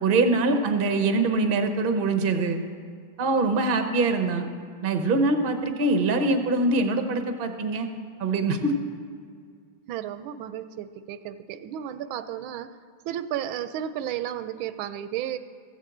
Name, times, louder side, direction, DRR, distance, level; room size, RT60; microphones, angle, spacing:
voice 1, 0.0-2.6 3.2-4.5 4.8-7.9 8.2-8.7, right 3 dB, 40° right, 6 dB, 0.8 m, -23 dB
voice 2, 9.9-12.7 13.0-15.4, right 10 dB, 85° right, 12 dB, 1.4 m, -33 dB
15.0 x 7.4 x 7.8 m, 2.1 s
omnidirectional pair, 2.2 m